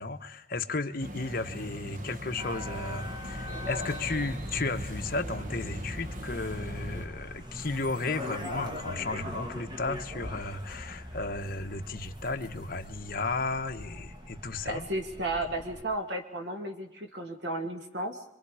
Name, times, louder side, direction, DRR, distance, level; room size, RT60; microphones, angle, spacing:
voice 1, 0.0-14.9, left 3 dB, 50° left, 5 dB, 1.2 m, -34 dB
sound 1, 1.0-7.1, equal, 45° right, 1.3 m, -39 dB
sound 2, 2.4-15.8, left 1 dB, 25° right, 1.7 m, -41 dB
voice 2, 14.7-18.2, right 1 dB, 60° right, 4 dB, 2.0 m, -33 dB
26.5 x 24.5 x 5.0 m, 0.84 s
head